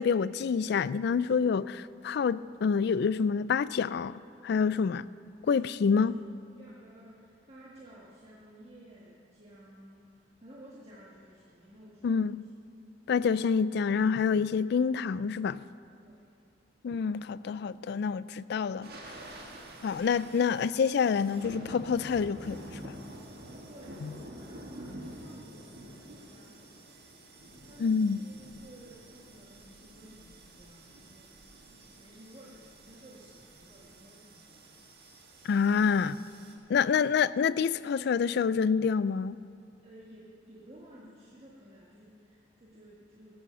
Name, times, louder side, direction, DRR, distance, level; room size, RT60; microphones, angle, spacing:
voice 1, 0.0-5.1 5.5-6.2 12.0-12.5 13.1-15.6 16.8-19.2 19.8-22.9 24.0-24.1 27.8-28.2 35.4-36.2 36.7-39.4, left 6 dB, 60° left, 0.3 m, -27 dB
voice 2, 5.5-6.0 6.6-12.2 16.0-16.3 23.7-31.3 31.8-34.8 36.7-36.9 39.8-43.4, right 1 dB, 35° right, 1.7 m, -54 dB
sound 1, 18.8-36.5, right 1 dB, 55° right, 1.8 m, -48 dB
16.5 x 8.6 x 6.9 m
head